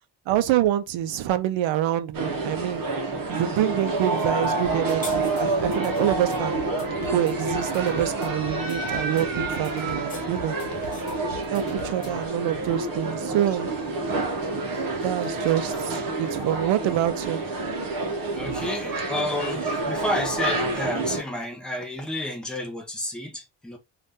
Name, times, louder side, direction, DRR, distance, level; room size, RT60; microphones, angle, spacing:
voice 1, 0.3-2.8 3.3-6.6 7.1-10.5 11.5-13.7 15.0-17.4, right 12 dB, 80° right, 0.6 m, -26 dB
sound 1, 2.1-21.2, right 2 dB, 50° right, 0.8 m, -28 dB
sound 2, 4.4-5.9 9.8-11.3, left 2 dB, 15° left, 0.9 m, -43 dB
sound 3, 4.6-12.3, left 4 dB, 50° left, 0.8 m, -43 dB
voice 2, 18.3-23.8, left 1 dB, ahead, 0.6 m, -31 dB
2.7 x 2.5 x 3.4 m
cardioid pair, 160°, 46 cm